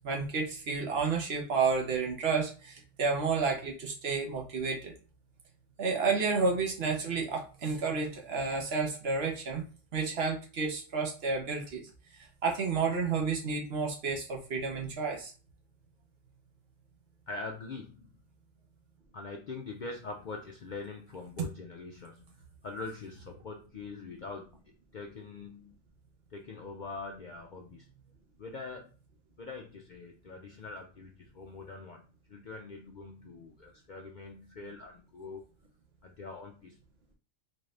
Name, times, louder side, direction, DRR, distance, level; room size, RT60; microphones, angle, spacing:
voice 1, 0.0-4.9 5.8-9.6 9.9-11.8 12.4-15.3, right 4 dB, 50° right, 0 dB, 1.1 m, -31 dB
voice 2, 17.3-18.1 19.1-24.6 24.9-25.8 26.3-27.9 28.4-28.9 29.4-32.0 32.3-35.4 36.0-36.8, left 3 dB, 80° left, 1 dB, 0.4 m, -43 dB
4.2 x 2.5 x 3.2 m, 0.37 s
omnidirectional pair, 1.4 m